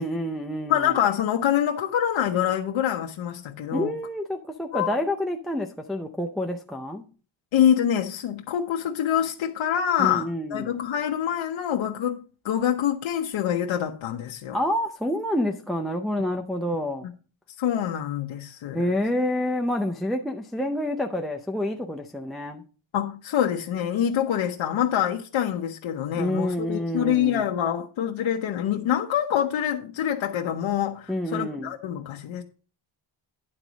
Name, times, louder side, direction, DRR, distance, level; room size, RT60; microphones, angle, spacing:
voice 1, 0.0-1.0 3.7-7.0 10.0-10.7 14.5-17.1 18.7-22.6 26.2-27.4 31.1-31.7, left 1 dB, ahead, 0.4 m, -28 dB
voice 2, 0.7-3.9 4.7-4.9 7.5-14.6 17.6-18.8 22.9-32.4, left 10 dB, 70° left, 0.8 m, -25 dB
10.0 x 3.9 x 6.1 m
wide cardioid pair, 165°, 49 cm